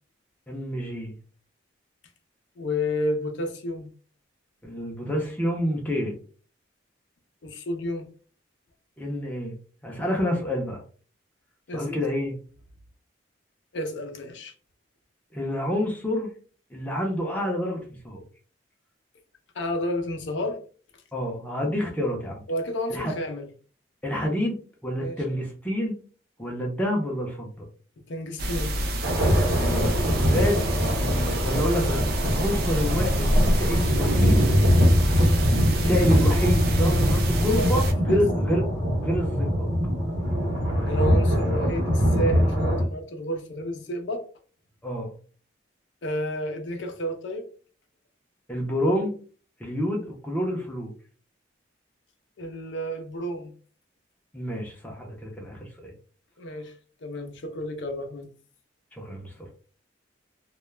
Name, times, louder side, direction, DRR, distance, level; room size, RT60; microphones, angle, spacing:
voice 1, 0.5-1.1 4.6-6.1 9.0-9.6 9.8-10.8 11.7-12.3 15.3-16.3 16.7-17.8 18.0-18.2 21.1-22.4 22.9-23.1 24.0-26.0 26.4-27.7 29.5-30.7 30.9-34.4 35.7-38.6 39.0-39.7 44.8-45.1 48.5-49.1 49.6-50.9 54.3-55.9 58.9-59.5, equal, 10° left, 0.5 m, -28 dB
voice 2, 2.6-3.9 7.4-8.1 11.7-12.0 13.7-14.5 19.5-20.6 22.5-23.5 25.0-25.4 28.1-28.8 35.8-36.0 36.9-37.0 37.6-38.3 40.9-44.3 46.0-47.4 52.4-53.5 56.4-56.7 57.0-58.3, left 1 dB, 70° left, 0.5 m, -31 dB
sound 1, 28.4-37.9, equal, 50° right, 0.4 m, -27 dB
sound 2, 29.0-42.8, equal, 80° right, 0.9 m, -23 dB
2.3 x 2.0 x 3.1 m
head